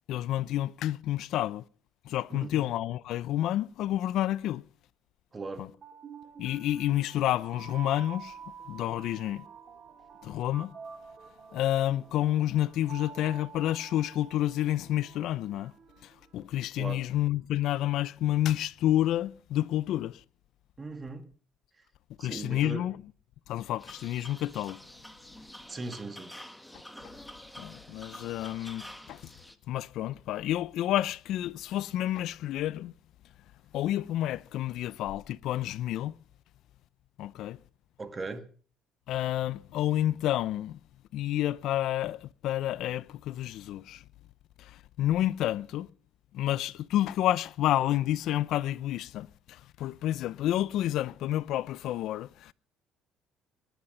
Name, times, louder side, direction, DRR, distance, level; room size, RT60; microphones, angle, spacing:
voice 1, 0.1-1.6 2.0-4.7 5.6-5.7 6.4-8.4 8.7-9.5 10.2-10.7 11.5-15.7 16.0-20.2 22.2-23.1 23.5-24.8 27.0-27.1 27.6-29.3 29.7-32.9 33.7-36.2 37.2-37.6 39.1-40.8 41.1-44.0 44.6-45.9 46.3-52.5, left 13 dB, 70° left, 0.7 m, -29 dB
voice 2, 2.3-2.7 5.3-5.7 16.8-17.0 20.8-21.3 22.2-22.9 25.7-26.3 38.0-38.5, right 3 dB, 25° right, 2.2 m, -38 dB
sound 1, 5.6-16.7, right 6 dB, 40° right, 2.4 m, -48 dB
sound 2, 23.8-29.6, left 1 dB, 5° left, 1.5 m, -48 dB
22.0 x 10.5 x 5.7 m
cardioid pair, 100°, 0 cm